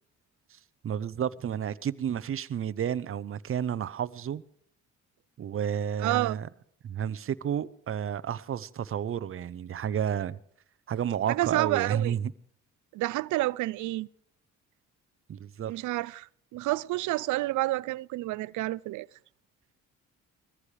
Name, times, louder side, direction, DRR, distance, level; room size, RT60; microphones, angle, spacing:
voice 1, 0.8-4.4 5.4-6.5 6.8-10.4 10.9-12.3 15.3-15.7, right 9 dB, 45° right, 0.7 m, -31 dB
voice 2, 6.0-6.4 11.3-12.1 12.9-14.1 15.7-19.1, right 18 dB, 75° right, 0.5 m, -29 dB
21.5 x 14.5 x 3.3 m
cardioid pair, 90°, 30 cm